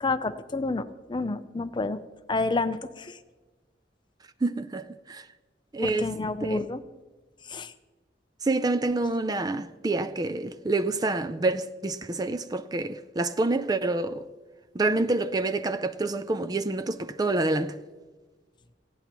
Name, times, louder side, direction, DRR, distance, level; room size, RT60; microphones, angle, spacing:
voice 1, 0.0-2.0 2.3-3.2 5.8-6.8 7.5-7.7, left 3 dB, 25° left, 0.6 m, -29 dB
voice 2, 4.4-5.2 5.7-6.1 6.4-6.7 8.4-14.3 14.7-17.8, right 2 dB, 20° right, 0.4 m, -27 dB
19.0 x 15.5 x 3.0 m
head